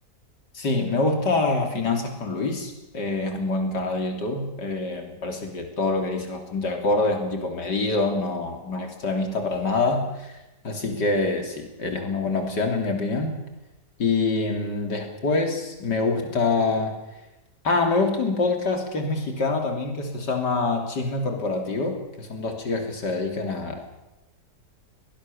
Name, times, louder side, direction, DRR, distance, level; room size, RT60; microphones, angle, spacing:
voice 1, 0.5-10.4 10.6-13.4 14.0-17.0 17.6-23.9, left 3 dB, 90° left, 4 dB, 3.8 m, -25 dB
23.0 x 18.5 x 7.0 m, 1.0 s
omnidirectional pair, 1.8 m